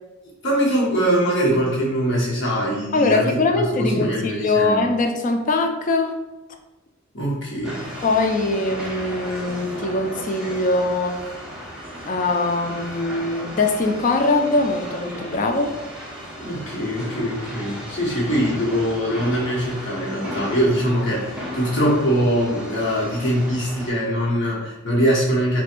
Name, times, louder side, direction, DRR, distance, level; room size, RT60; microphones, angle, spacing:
voice 1, 0.4-4.9 7.1-7.9 16.4-25.6, equal, 60° left, -5 dB, 1.0 m, -22 dB
voice 2, 2.9-6.1 8.0-11.2 12.1-15.8, left 2 dB, 40° left, 4 dB, 0.3 m, -22 dB
sound 1, 7.6-23.9, equal, 5° right, 0.6 m, -35 dB
4.3 x 2.2 x 2.5 m, 1.0 s
head